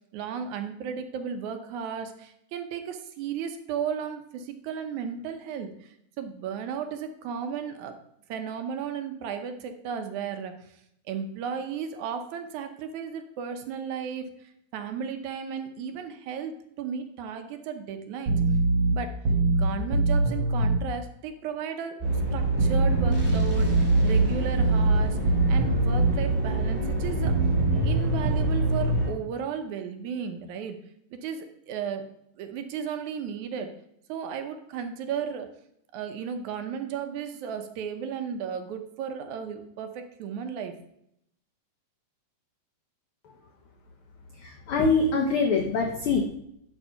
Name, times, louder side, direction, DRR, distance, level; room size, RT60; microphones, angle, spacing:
voice 1, 0.1-8.0 8.3-10.8 11.1-14.3 14.7-18.4 18.9-19.2 19.5-22.0 22.3-25.2 25.5-27.4 27.8-30.8 31.1-32.1 32.4-33.7 34.1-35.5 35.9-40.8, right 7 dB, 75° right, 7 dB, 2.1 m, -34 dB
sound 1, 18.3-20.8 22.6-26.2 27.3-28.9, right 2 dB, 45° right, 1.9 m, -23 dB
sound 2, 22.0-29.1, right 2 dB, 5° right, 1.6 m, -27 dB
voice 2, 44.4-46.2, left 4 dB, 80° left, 2 dB, 1.2 m, -24 dB
11.0 x 4.0 x 5.6 m, 0.75 s
omnidirectional pair, 3.5 m